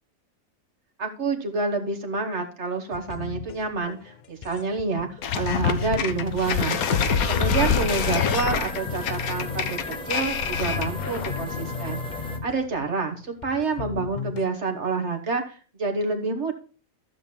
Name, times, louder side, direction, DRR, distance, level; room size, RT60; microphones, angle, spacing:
voice 1, 1.0-6.8 7.3-12.0 12.4-16.5, right 4 dB, 55° right, 4 dB, 1.6 m, -28 dB
sound 1, 2.9-14.5, left 6 dB, 65° left, 0.4 m, -37 dB
sound 2, 5.2-11.5, left 6 dB, 90° left, 1.2 m, -25 dB
sound 3, 6.4-12.4, equal, 5° left, 1.1 m, -36 dB
13.5 x 7.1 x 2.2 m, 0.38 s
omnidirectional pair, 1.5 m